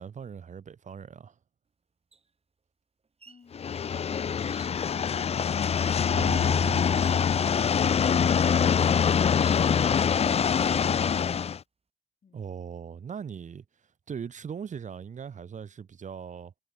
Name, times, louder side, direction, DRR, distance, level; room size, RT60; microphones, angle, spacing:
voice 1, 0.0-1.3 6.1-6.8 12.3-13.6 14.1-16.5, right 7 dB, 75° right, 0.9 m, -39 dB
sound 1, 2.1-2.2 3.0-3.5 4.5-5.0 5.7-6.2 6.9-7.4 8.3-8.6 9.4-10.0 10.5-10.9, right 4 dB, 50° right, 3.9 m, -51 dB
sound 2, 3.5-11.6, left 7 dB, 55° left, 0.4 m, -24 dB
voice 2, 12.2-12.5, left 6 dB, 75° left, 4.7 m, -59 dB
cardioid pair, 70°, 13 cm